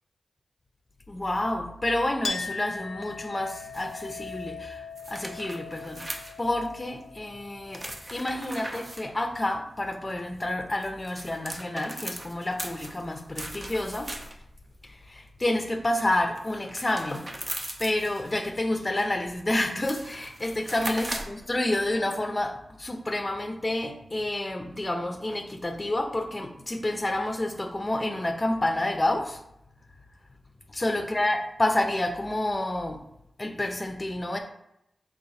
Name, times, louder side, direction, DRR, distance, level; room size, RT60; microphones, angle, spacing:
voice 1, 1.1-7.8 8.1-14.1 14.9-17.3 17.8-29.4 30.7-33.0 33.4-34.4, left 1 dB, 35° left, 4 dB, 0.6 m, -29 dB
Chink clink, 2.2-9.3, left 4 dB, 80° left, 0.4 m, -40 dB
sound 1, 3.7-4.3 5.0-6.7 7.7-9.0 10.6-14.5 16.4-18.3 19.3-19.4 19.7-21.4, right 1 dB, 30° right, 0.7 m, -39 dB
3.7 x 2.6 x 4.2 m, 0.80 s
cardioid pair, 45°, 0 cm